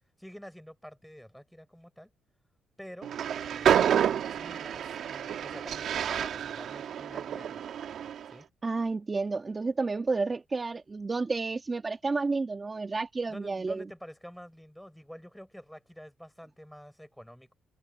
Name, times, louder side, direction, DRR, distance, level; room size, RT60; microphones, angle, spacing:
voice 1, 0.2-2.1 2.8-7.7 8.3-8.5 13.3-17.5, equal, ahead, 7.5 m, -48 dB
Train, 3.0-8.3, right 9 dB, 65° right, 2.1 m, -29 dB
voice 2, 8.6-13.9, right 3 dB, 30° right, 1.9 m, -31 dB
cardioid pair, 90°, 0 cm